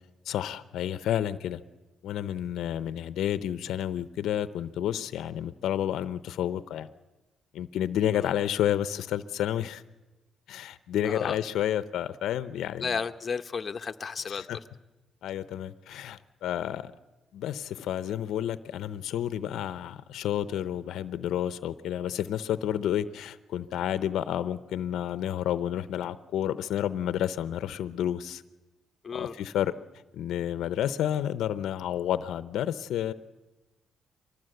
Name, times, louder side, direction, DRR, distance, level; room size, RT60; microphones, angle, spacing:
voice 1, 0.3-1.6 2.0-6.9 7.5-9.8 10.5-13.0 14.3-14.6 15.2-16.9 17.3-28.4 29.1-29.7 30.1-33.1, left 11 dB, 80° left, 14 dB, 0.7 m, -30 dB
voice 2, 11.0-11.3 12.8-14.4 29.0-29.3, left 5 dB, 40° left, 8 dB, 0.9 m, -33 dB
24.0 x 19.5 x 7.9 m, 1.1 s
cardioid pair, 90°, 0 cm